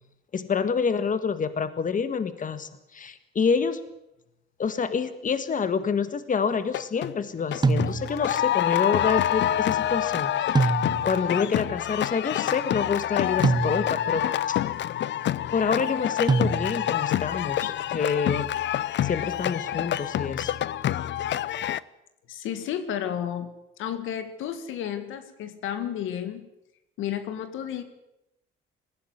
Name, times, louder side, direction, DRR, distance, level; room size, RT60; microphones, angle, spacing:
voice 1, 0.3-3.8 4.6-10.7 11.0-14.6 15.5-18.5 19.0-20.5, left 5 dB, 40° left, 11 dB, 1.7 m, -27 dB
sound 1, 6.6-7.1 7.5-21.8, left 11 dB, 65° left, 0.7 m, -27 dB
sound 2, 7.6-8.4 10.5-11.3 13.4-14.2 16.3-17.0, right 4 dB, 20° right, 0.7 m, -25 dB
voice 2, 22.3-23.5 23.8-26.5 27.0-27.8, left 9 dB, 90° left, 10 dB, 2.0 m, -32 dB
19.5 x 15.5 x 10.0 m, 0.91 s
cardioid pair, 90°, 20 cm